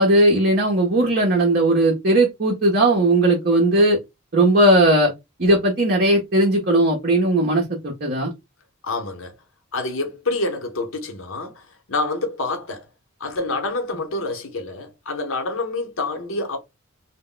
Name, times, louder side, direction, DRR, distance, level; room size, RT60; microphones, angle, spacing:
voice 1, 0.0-4.0 4.3-5.1 5.4-8.3, right 1 dB, 45° right, 0.7 m, -17 dB
voice 2, 8.8-9.3 9.7-12.9 13.2-16.6, left 2 dB, 65° left, 0.8 m, -27 dB
2.1 x 2.1 x 3.7 m
head